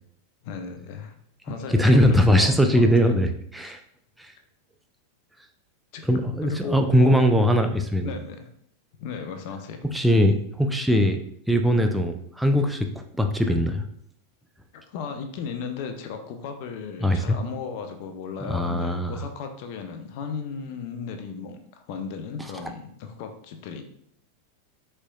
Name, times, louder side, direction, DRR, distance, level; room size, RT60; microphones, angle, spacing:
voice 1, 0.4-1.2 1.4-3.2 3.6-3.7 5.9-6.0 6.4-7.3 8.0-8.5 9.0-9.8 14.7-23.8, left 6 dB, 55° left, 7 dB, 0.6 m, -35 dB
voice 2, 1.7-3.8 4.2-4.3 6.0-8.1 9.8-11.2 11.5-12.9 13.2-13.8 17.0-17.4 18.4-19.2, equal, 5° right, 5 dB, 0.5 m, -21 dB
4.4 x 3.0 x 2.3 m, 0.69 s
hypercardioid pair, 100°, 0 cm